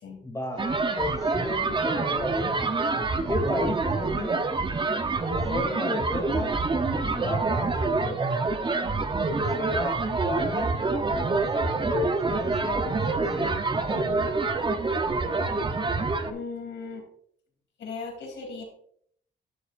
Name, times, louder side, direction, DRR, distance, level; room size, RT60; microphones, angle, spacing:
voice 1, 0.2-4.4 5.4-8.4 9.3-10.8 11.3-14.3, left 2 dB, 15° left, 2 dB, 2.7 m, -34 dB
sound 1, 0.6-16.3, right 3 dB, 25° right, 0.8 m, -26 dB
voice 2, 16.3-17.0 17.8-18.6, left 4 dB, 65° left, 2 dB, 3.2 m, -37 dB
11.5 x 6.9 x 2.6 m, 0.64 s
cardioid pair, 90°, 20 cm